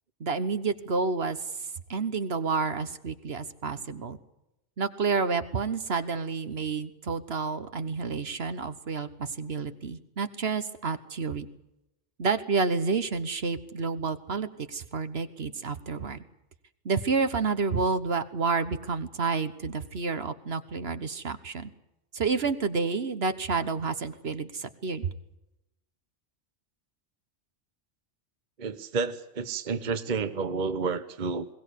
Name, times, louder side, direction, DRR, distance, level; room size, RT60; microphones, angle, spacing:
voice 1, 0.2-1.4 1.9-4.2 4.8-11.5 12.2-16.2 16.8-21.7 22.1-25.1, right 4 dB, 65° right, 11 dB, 1.5 m, -29 dB
voice 2, 28.6-31.5, right 4 dB, 45° right, 11 dB, 1.0 m, -30 dB
21.5 x 17.5 x 8.4 m, 0.88 s
omnidirectional pair, 1.2 m